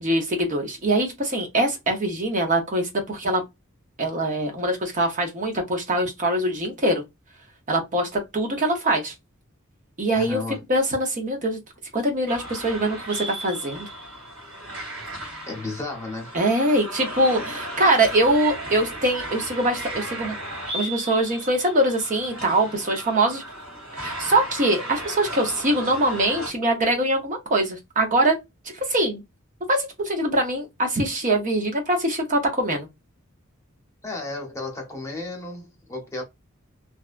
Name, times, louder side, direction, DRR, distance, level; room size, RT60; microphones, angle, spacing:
voice 1, 0.0-3.4 4.0-7.0 7.7-9.1 10.0-10.4 10.7-11.6 11.9-13.9 16.3-20.3 20.7-23.4 24.0-28.4 28.9-29.2 29.7-32.9, right 1 dB, 40° right, 0.6 m, -23 dB
voice 2, 10.1-10.6 15.5-16.4 34.0-36.2, left 2 dB, 15° left, 0.8 m, -33 dB
sound 1, 12.3-26.5, right 1 dB, 80° right, 1.6 m, -35 dB
2.7 x 2.2 x 2.3 m
head